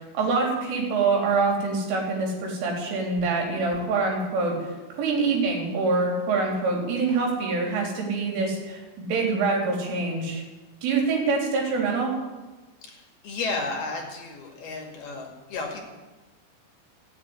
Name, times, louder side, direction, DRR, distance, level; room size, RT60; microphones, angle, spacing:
voice 1, 0.1-4.5 4.9-10.4 10.8-12.1, right 4 dB, 75° right, 0 dB, 5.9 m, -25 dB
voice 2, 12.8-15.8, left 3 dB, 60° left, 1 dB, 3.5 m, -33 dB
16.0 x 9.4 x 9.6 m, 1.2 s
omnidirectional pair, 5.7 m